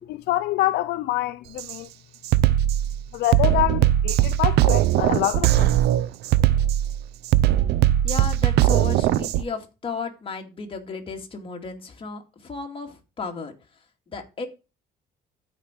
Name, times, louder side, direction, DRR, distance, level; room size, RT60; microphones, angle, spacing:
voice 1, 0.1-1.9 3.1-5.7, left 15 dB, 75° left, 0.5 m, -25 dB
Drum kit, 1.6-1.8 2.2-9.4, right 13 dB, 75° right, 0.5 m, -20 dB
voice 2, 8.0-13.5 14.1-14.5, left 4 dB, 30° left, 2.3 m, -34 dB
13.0 x 5.1 x 4.4 m
cardioid pair, 110°, 17 cm